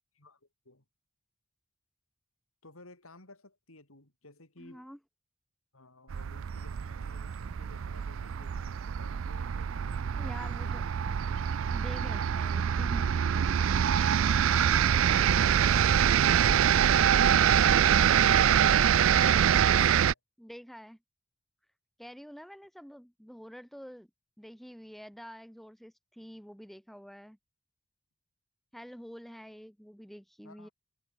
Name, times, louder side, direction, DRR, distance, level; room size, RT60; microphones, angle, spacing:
voice 1, 0.2-0.8 2.6-4.9 5.7-11.5 14.1-17.4 19.6-20.2 30.4-30.7, left 2 dB, 85° left, 5.0 m, -55 dB
voice 2, 4.6-5.0 10.1-10.9 11.7-13.3 17.6-18.7 20.4-21.0 22.0-24.1 24.4-27.4 28.7-30.7, equal, ahead, 1.4 m, -47 dB
sound 1, 6.1-20.1, right 8 dB, 70° right, 0.4 m, -25 dB
head